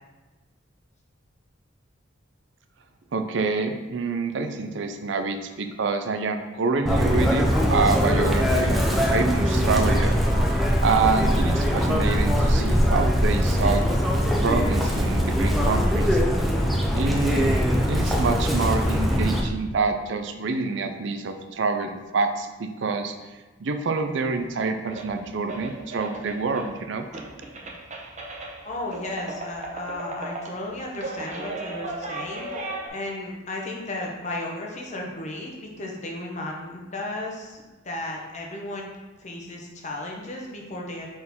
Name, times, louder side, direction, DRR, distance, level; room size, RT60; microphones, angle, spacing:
voice 1, 3.1-8.8 9.1-10.1 10.8-13.8 14.4-16.2 16.9-23.2 23.6-27.1, right 4 dB, 65° right, 7 dB, 0.5 m, -26 dB
Chirp tweet, 6.9-19.4, equal, ahead, 0.6 m, -22 dB
sound 1, 24.4-24.5 24.8-26.8 27.1-32.9, right 2 dB, 35° right, 0.8 m, -36 dB
voice 2, 28.6-32.5 32.9-38.9 39.2-41.1, left 2 dB, 35° left, -1 dB, 1.0 m, -34 dB
6.0 x 4.3 x 3.6 m, 1.2 s
head